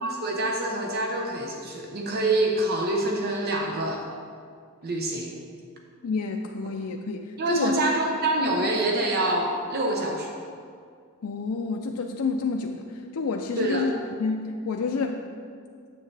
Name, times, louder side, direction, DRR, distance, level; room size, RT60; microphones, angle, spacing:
voice 1, 0.0-4.0 4.8-5.3 7.4-10.3 13.6-13.9, right 2 dB, 45° right, 0 dB, 0.7 m, -26 dB
voice 2, 6.0-7.8 11.2-12.8 13.1-13.9 14.2-15.2, left 4 dB, 75° left, 2 dB, 0.4 m, -28 dB
8.7 x 7.1 x 3.3 m, 2.2 s
head